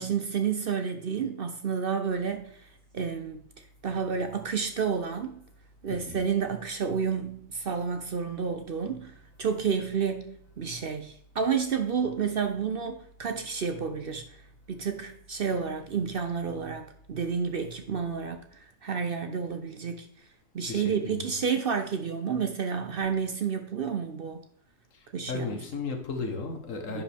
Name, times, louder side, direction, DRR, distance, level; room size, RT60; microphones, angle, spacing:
voice 1, 0.0-2.7 2.9-3.4 3.8-5.4 5.8-14.2 14.7-18.4 18.8-20.1 20.5-24.4 25.1-25.6 26.9-27.0, right 6 dB, 55° right, 0.8 m, -30 dB
sound 1, 2.0-18.6, equal, 90° right, 3.5 m, -58 dB
voice 2, 5.9-6.2 20.7-21.3 25.3-27.0, left 4 dB, 70° left, 1.6 m, -35 dB
10.5 x 5.2 x 3.4 m
omnidirectional pair, 1.4 m